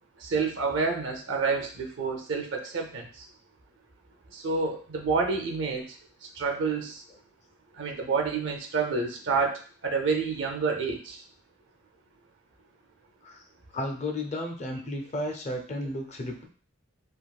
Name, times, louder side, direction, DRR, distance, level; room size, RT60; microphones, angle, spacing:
voice 1, 0.2-3.1 4.3-5.9 6.4-7.0 7.8-11.2, right 4 dB, 65° right, 3 dB, 0.5 m, -28 dB
voice 2, 13.7-16.5, left 1 dB, 35° left, 2 dB, 0.4 m, -33 dB
3.4 x 2.3 x 2.3 m, 0.41 s
head